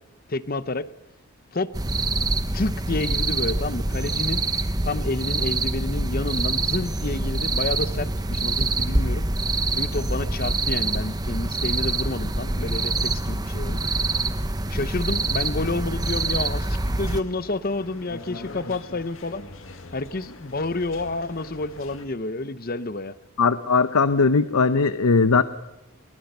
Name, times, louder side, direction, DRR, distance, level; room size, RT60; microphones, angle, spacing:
voice 1, 0.3-0.9 1.5-1.7 2.5-4.4 4.8-9.3 9.7-13.9 14.7-19.4 19.9-23.1, left 2 dB, 40° left, 15 dB, 0.8 m, -29 dB
sound 1, 1.7-17.2, right 2 dB, 15° right, 0.9 m, -25 dB
sound 2, 16.8-22.1, left 2 dB, 65° left, 2.1 m, -43 dB
voice 2, 23.4-25.4, left 4 dB, 85° left, 12 dB, 0.8 m, -19 dB
23.0 x 21.0 x 6.8 m, 1.0 s
head